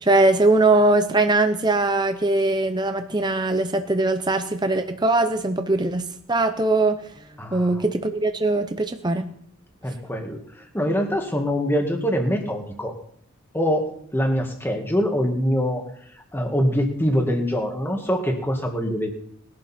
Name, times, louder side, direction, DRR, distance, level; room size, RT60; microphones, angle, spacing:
voice 1, 0.0-7.0 7.5-9.3, right 2 dB, 20° right, 7 dB, 0.7 m, -21 dB
voice 2, 7.4-7.8 9.8-12.9 13.5-13.9 14.1-15.9 16.1-19.1, equal, 10° left, 3 dB, 1.9 m, -24 dB
20.0 x 11.5 x 4.3 m, 0.66 s
head